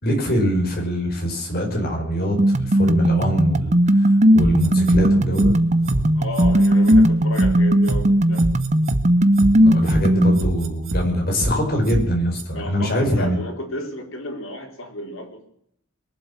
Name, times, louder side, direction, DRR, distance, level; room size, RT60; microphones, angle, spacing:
voice 1, 0.0-5.5 5.8-6.1 9.6-13.4, equal, 50° left, 1 dB, 5.4 m, -23 dB
sound 1, 2.4-10.4, right 1 dB, 35° right, 0.8 m, -17 dB
sound 2, 4.4-5.0 5.4-5.5 5.9-6.0 6.4-7.0 7.4-7.5 7.9-8.0 8.4-9.0 9.4-9.5 9.9-10.0 10.4-11.0 11.4-11.5 11.9-12.0 12.4-12.5, right 1 dB, 70° right, 2.1 m, -25 dB
voice 2, 6.1-8.5 9.8-10.3 12.5-15.5, left 1 dB, 90° left, 2 dB, 4.2 m, -33 dB
22.5 x 7.8 x 7.5 m, 0.70 s
head